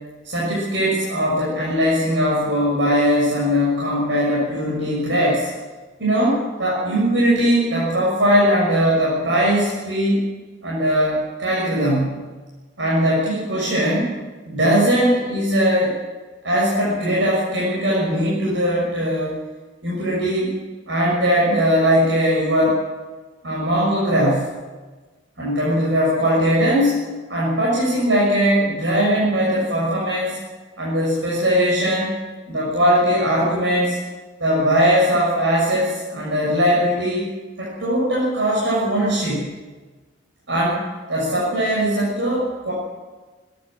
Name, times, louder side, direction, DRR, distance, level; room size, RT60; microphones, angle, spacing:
voice 1, 0.2-5.5 6.0-10.2 10.6-12.3 12.8-14.1 14.4-16.0 16.4-19.3 19.8-20.5 20.9-22.8 23.4-24.6 25.4-27.0 27.3-30.4 30.8-32.1 32.5-34.0 34.4-37.3 37.6-39.5 40.5-40.8 41.1-42.7, equal, 80° right, -5 dB, 6.4 m, -20 dB
27.0 x 12.5 x 7.8 m, 1.3 s
head